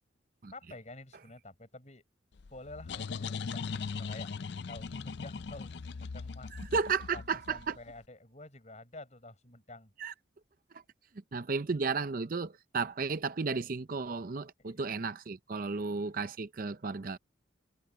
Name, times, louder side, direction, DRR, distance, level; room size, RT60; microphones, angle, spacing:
voice 1, 0.5-2.0 2.5-6.5 7.1-9.9 14.6-14.8 15.7-15.8, left 2 dB, 35° left, 6.9 m, -50 dB
sound 1, 2.4-7.9, left 5 dB, 60° left, 0.5 m, -39 dB
voice 2, 6.7-7.8 10.0-10.1 11.3-17.2, right 4 dB, 45° right, 0.6 m, -33 dB
head